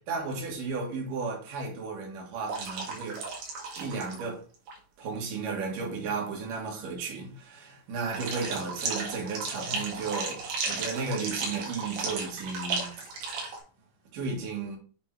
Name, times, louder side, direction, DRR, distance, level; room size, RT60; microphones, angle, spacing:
voice 1, 0.1-3.2 3.8-4.4 5.0-13.1 14.1-14.8, right 4 dB, 75° right, 3.2 m, -34 dB
sound 1, 2.5-4.2 4.5-4.7 8.1-13.6, right 4 dB, 90° right, 3.6 m, -34 dB
8.2 x 3.5 x 4.5 m
omnidirectional pair, 3.9 m